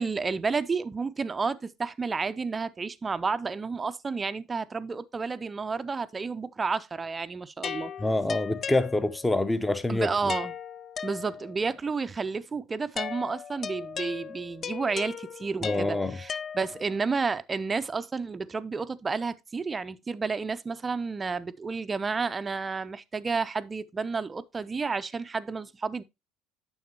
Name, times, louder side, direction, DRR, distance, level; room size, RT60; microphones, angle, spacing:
voice 1, 0.0-7.9 9.9-10.5 11.0-26.0, right 4 dB, 25° right, 0.5 m, -31 dB
sound 1, 7.6-9.4 10.3-11.7 13.0-17.1, left 7 dB, 35° left, 0.3 m, -37 dB
voice 2, 8.0-10.3 15.6-16.2, left 2 dB, 10° left, 0.8 m, -26 dB
9.2 x 7.1 x 2.9 m
figure-of-eight pair, 65°, 0 cm